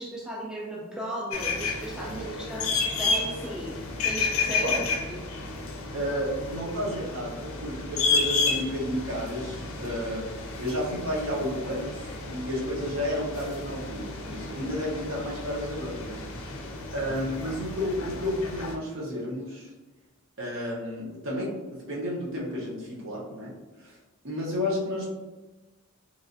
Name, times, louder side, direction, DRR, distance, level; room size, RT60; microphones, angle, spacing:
voice 1, 0.0-4.8 5.1-5.2 16.6-16.7, right 1 dB, 5° right, -5 dB, 0.3 m, -36 dB
sound 1, 1.3-18.7, left 4 dB, 70° left, 0.4 m, -32 dB
voice 2, 4.5-4.8 5.9-10.3 10.6-16.2 16.9-19.7 20.4-23.5 23.8-24.0 24.2-25.1, left 1 dB, 65° right, -4 dB, 0.8 m, -32 dB
3.1 x 2.4 x 2.5 m, 1.2 s
head